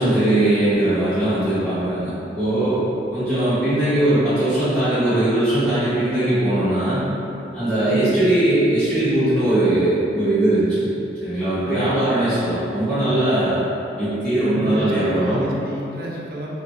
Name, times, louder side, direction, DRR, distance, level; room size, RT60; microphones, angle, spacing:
voice 1, 0.0-2.1 2.4-2.8 3.1-7.1 7.5-10.9 11.2-13.6 14.0-15.4, right 1 dB, ahead, -20 dB, 1.2 m, -20 dB
voice 2, 7.8-8.2 11.6-12.6 14.5-16.5, right 1 dB, 55° right, -4 dB, 0.5 m, -32 dB
3.2 x 2.4 x 3.0 m, 2.9 s
head